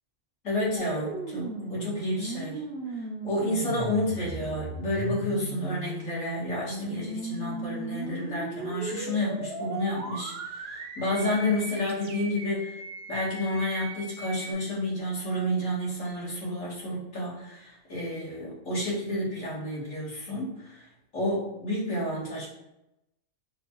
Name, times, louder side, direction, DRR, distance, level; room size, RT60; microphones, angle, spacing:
voice 1, 0.4-2.6 3.2-12.8 13.1-20.9 21.1-22.5, left 1 dB, 70° left, -7 dB, 1.7 m, -30 dB
sound 1, 0.8-14.5, right 3 dB, 60° right, 0.7 m, -37 dB
5.0 x 2.3 x 2.9 m, 0.88 s
omnidirectional pair, 1.4 m